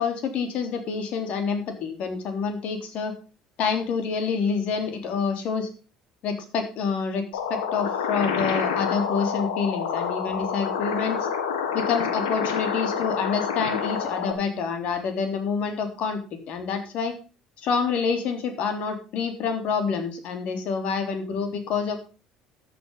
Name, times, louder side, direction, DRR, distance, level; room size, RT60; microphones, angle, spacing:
voice 1, 0.0-3.1 3.6-5.7 6.2-7.2 7.5-11.3 11.7-16.2 16.5-17.2 17.6-22.0, left 5 dB, 60° left, 6 dB, 3.4 m, -27 dB
sound 1, 7.3-14.3, left 7 dB, 80° left, 1.9 m, -28 dB
13.5 x 7.1 x 5.5 m, 0.35 s
hypercardioid pair, 65°, 2 cm